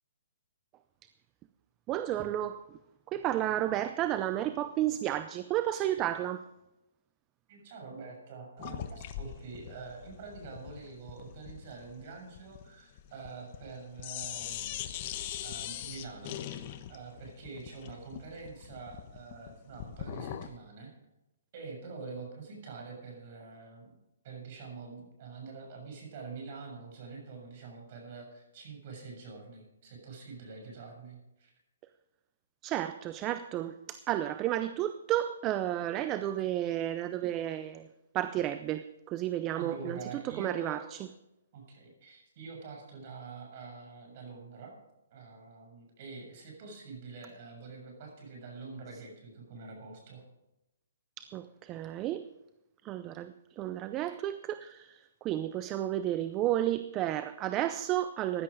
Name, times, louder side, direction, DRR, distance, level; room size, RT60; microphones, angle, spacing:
voice 1, 1.9-2.8 3.1-6.4 32.6-37.9 38.1-41.1 51.2-52.3 52.8-58.4, right 13 dB, 20° right, 12 dB, 0.5 m, -32 dB
voice 2, 7.5-14.9 15.4-20.9 21.5-24.0 24.2-31.5 39.5-40.8 41.5-44.8 45.1-50.2, right 4 dB, 45° right, 2 dB, 7.0 m, -46 dB
sound 1, 8.6-13.7 14.0-20.6, left 11 dB, 35° left, 1.1 m, -42 dB
16.0 x 11.0 x 5.0 m, 0.93 s
hypercardioid pair, 150°, 0 cm